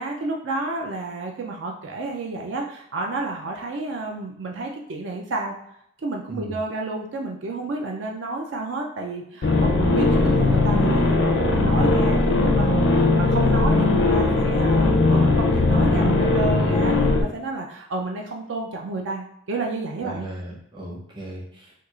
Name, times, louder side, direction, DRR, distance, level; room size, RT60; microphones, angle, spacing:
voice 1, 0.0-5.6 6.0-20.3, right 2 dB, 65° right, 1 dB, 0.4 m, -30 dB
sound 1, 9.4-17.2, left 2 dB, 65° left, 0.5 m, -19 dB
voice 2, 20.0-21.7, right 1 dB, 25° right, -3 dB, 0.7 m, -36 dB
4.5 x 2.3 x 2.3 m, 0.75 s
head